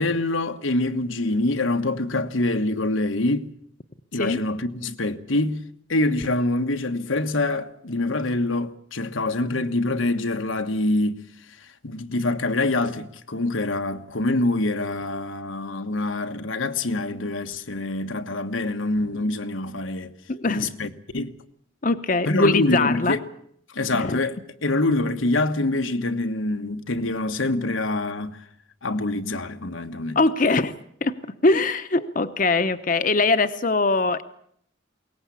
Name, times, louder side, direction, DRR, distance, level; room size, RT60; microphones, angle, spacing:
voice 1, 0.0-3.5 4.1-11.2 11.8-20.1 20.5-21.3 22.2-23.2 23.7-28.4 28.8-30.2, left 2 dB, 85° left, 1.4 m, -25 dB
voice 2, 20.3-20.7 21.8-23.2 23.9-24.2 30.1-34.2, left 3 dB, 45° left, 0.9 m, -22 dB
22.5 x 18.5 x 8.5 m
head